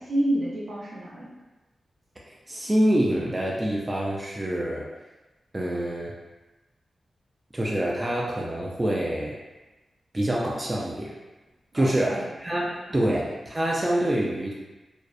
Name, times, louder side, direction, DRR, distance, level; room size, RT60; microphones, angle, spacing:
voice 1, 0.1-1.3 11.7-12.3 12.9-13.1, right 1 dB, 65° right, -6 dB, 0.6 m, -29 dB
voice 2, 2.5-4.9 5.5-6.1 7.5-9.4 10.1-11.1 11.7-14.5, right 1 dB, 20° right, -4 dB, 0.3 m, -26 dB
2.5 x 2.0 x 2.4 m, 1.1 s
wide cardioid pair, 110°, 0 cm